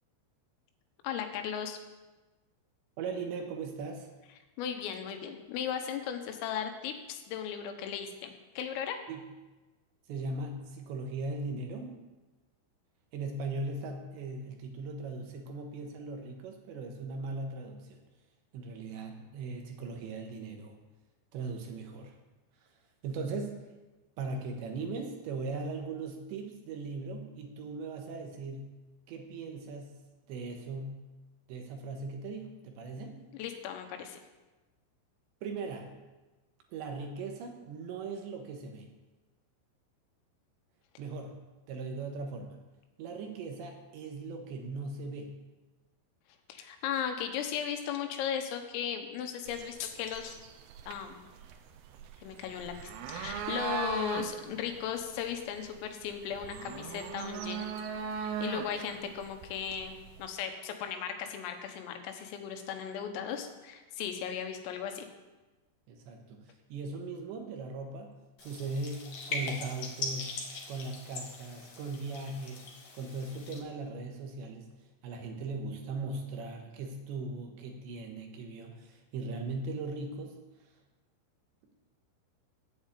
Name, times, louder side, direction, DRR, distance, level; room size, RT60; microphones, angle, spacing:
voice 1, 1.0-1.8 4.6-9.0 33.4-34.2 46.5-50.4 50.9-51.2 52.2-52.7 53.1-57.7 58.2-65.1, left 8 dB, 85° left, 5 dB, 3.9 m, -36 dB
voice 2, 3.0-4.1 9.1-9.3 10.1-12.0 13.1-18.0 18.5-20.8 21.3-22.1 23.0-23.6 24.2-28.7 29.1-29.9 30.3-31.0 31.5-33.2 35.4-35.9 36.7-38.9 41.0-41.4 41.7-42.6 43.0-45.4 65.9-66.4 66.7-68.1 68.4-70.4 70.7-72.7 72.9-74.7 75.0-80.4, right 3 dB, 70° right, 3 dB, 3.1 m, -39 dB
sound 1, 49.5-60.3, right 6 dB, 90° right, 2.3 m, -40 dB
sound 2, 68.4-73.6, left 3 dB, 55° left, 2.3 m, -40 dB
10.5 x 8.8 x 8.3 m, 1.2 s
omnidirectional pair, 5.8 m